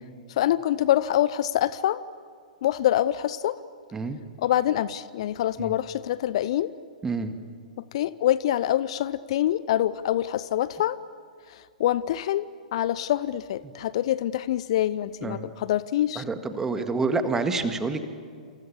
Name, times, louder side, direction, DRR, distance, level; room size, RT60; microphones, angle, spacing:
voice 1, 0.3-2.0 2.6-3.6 4.4-6.7 7.9-11.0 11.5-16.2, left 12 dB, 50° left, 18 dB, 0.6 m, -25 dB
voice 2, 7.0-7.3 15.2-15.5 16.2-18.1, right 3 dB, 10° right, 8 dB, 1.9 m, -28 dB
28.5 x 28.0 x 7.1 m, 2.2 s
figure-of-eight pair, 110°, 4 cm